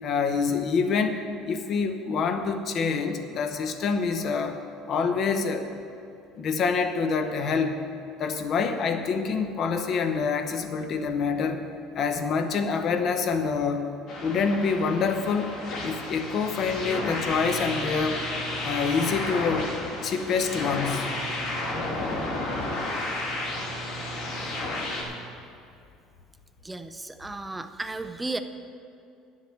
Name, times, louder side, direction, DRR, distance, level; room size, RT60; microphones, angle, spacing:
voice 1, 0.0-1.2 1.5-4.6 4.9-5.7 6.3-7.8 8.2-11.6 11.9-13.8 14.2-15.5 15.8-18.2 18.6-19.7 20.0-21.1, left 5 dB, 35° left, 7 dB, 0.7 m, -26 dB
sound 1, 14.1-25.0, left 2 dB, 50° left, 2.3 m, -32 dB
voice 2, 26.6-28.4, right 2 dB, 5° right, 9 dB, 0.4 m, -34 dB
11.0 x 7.4 x 7.4 m, 2.6 s
cardioid pair, 180°, 0 cm